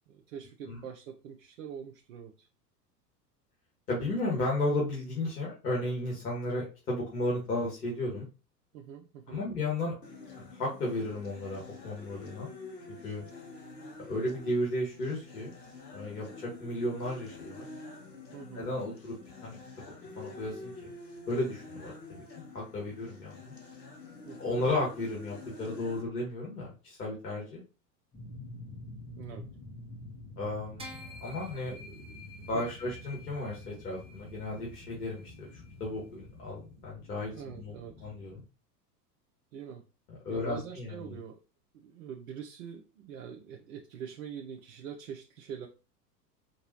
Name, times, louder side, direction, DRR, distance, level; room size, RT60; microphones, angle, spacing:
voice 1, 0.1-2.5 8.7-9.4 18.3-18.7 24.3-24.6 29.1-29.5 31.9-32.6 37.3-38.1 39.5-39.8 40.3-41.4 41.7-45.7, right 8 dB, 55° right, 2 dB, 0.7 m, -44 dB
voice 2, 3.9-8.2 9.3-9.9 10.3-12.5 13.0-13.2 14.0-15.5 15.9-17.7 18.5-19.1 19.4-19.6 20.2-20.9 21.3-22.2 22.5-23.5 24.4-27.6 30.4-30.9 31.2-31.7 32.5-37.7 38.0-38.4 40.1-41.2, left 1 dB, 70° left, -4 dB, 1.9 m, -34 dB
sound 1, 10.0-26.0, left 3 dB, 85° left, 0.9 m, -48 dB
sound 2, 28.1-38.4, left 2 dB, 10° left, 0.9 m, -49 dB
sound 3, 30.8-36.4, equal, 10° right, 0.6 m, -50 dB
4.4 x 3.0 x 3.0 m, 0.32 s
figure-of-eight pair, 85°, 48 cm